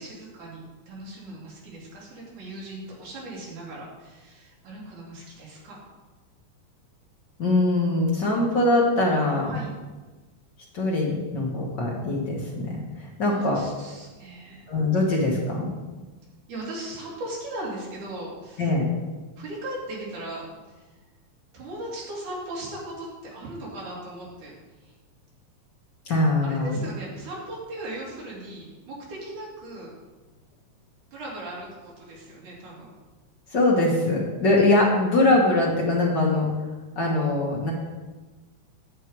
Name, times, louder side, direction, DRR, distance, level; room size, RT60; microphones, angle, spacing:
voice 1, 0.0-5.8 9.5-9.7 13.3-14.7 16.5-18.7 19.4-20.9 21.5-24.5 24.8-24.9 26.4-30.0 31.1-32.9, right 1 dB, 70° right, -5 dB, 4.0 m, -38 dB
voice 2, 7.4-9.6 10.7-13.6 14.7-15.7 18.6-18.9 26.0-26.8 33.5-36.5 36.9-37.7, left 2 dB, 50° left, -3 dB, 1.4 m, -22 dB
9.2 x 7.8 x 4.7 m, 1.2 s
omnidirectional pair, 3.7 m